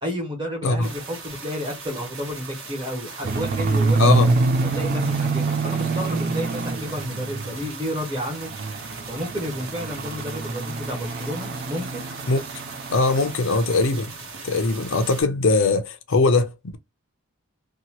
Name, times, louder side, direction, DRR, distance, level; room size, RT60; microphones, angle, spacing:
voice 1, 0.0-4.1 4.7-8.5 9.1-12.0, equal, 20° right, 1.2 m, -31 dB
sound 1, 0.8-15.2, right 4 dB, 60° right, 1.1 m, -39 dB
sound 2, 3.2-7.8 8.2-13.4 13.7-14.0 14.3-14.4 14.8-14.9, right 3 dB, 40° right, 0.4 m, -25 dB
voice 2, 4.0-4.3 12.3-12.4 12.9-14.1 14.4-16.8, left 3 dB, 55° left, 0.5 m, -21 dB
2.8 x 2.2 x 2.9 m
head